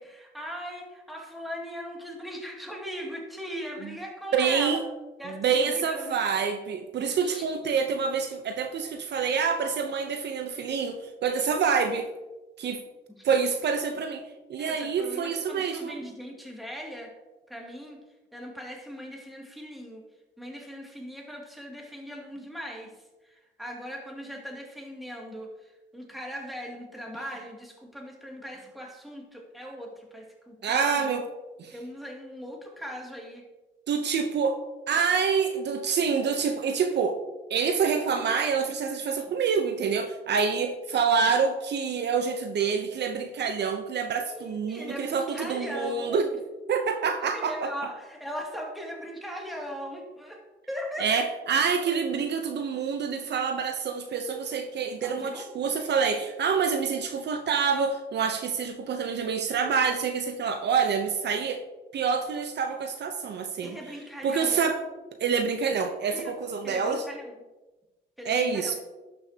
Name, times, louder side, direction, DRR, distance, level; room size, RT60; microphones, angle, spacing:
voice 1, 0.0-4.8 5.2-6.2 7.0-7.4 13.1-13.3 14.6-17.1 17.5-18.0 18.3-20.0 20.4-31.2 31.7-33.5 44.3-46.3 47.3-51.2 51.9-52.0 55.0-55.5 63.6-64.6 66.1-66.3 66.6-67.3 68.2-68.7, equal, ahead, -2 dB, 2.4 m, -39 dB
voice 2, 4.3-4.8 5.3-12.1 12.6-12.8 13.2-14.2 14.5-16.0 30.6-31.2 31.6-31.7 33.9-34.6 34.9-37.2 37.5-46.3 46.7-47.7 51.0-61.6 61.9-63.8 64.2-64.8 65.2-67.0 68.3-68.8, right 6 dB, 60° right, 6 dB, 0.8 m, -27 dB
12.0 x 6.4 x 2.9 m, 1.1 s
cardioid pair, 90°, 20 cm